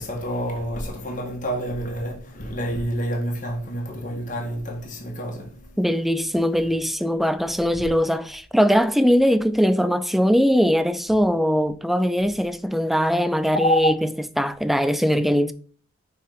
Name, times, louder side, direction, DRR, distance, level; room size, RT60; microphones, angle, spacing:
voice 1, 0.0-5.8 13.5-13.9, equal, 40° left, 1.9 m, -28 dB
voice 2, 5.8-14.1 14.4-15.5, equal, ahead, 0.4 m, -21 dB
6.2 x 4.3 x 5.3 m
head